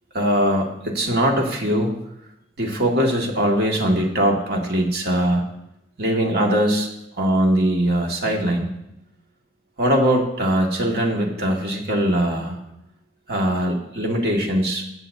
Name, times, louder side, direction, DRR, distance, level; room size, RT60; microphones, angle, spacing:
voice 1, 0.1-2.0 2.6-5.5 6.0-6.9 7.2-8.7 9.8-12.6 13.3-14.8, equal, 60° right, 0 dB, 2.1 m, -21 dB
22.5 x 7.9 x 2.7 m, 0.85 s
head